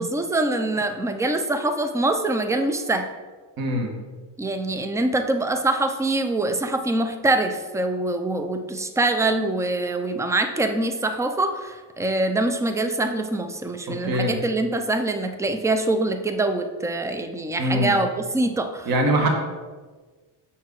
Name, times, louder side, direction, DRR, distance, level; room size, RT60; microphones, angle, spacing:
voice 1, 0.0-3.1 4.4-18.9, right 2 dB, 5° right, 7 dB, 0.4 m, -24 dB
voice 2, 3.6-3.9 13.9-14.4 17.6-18.0 18.9-19.3, right 1 dB, 50° right, 2 dB, 1.3 m, -23 dB
6.9 x 4.7 x 4.6 m, 1.4 s
cardioid pair, 120°, 46 cm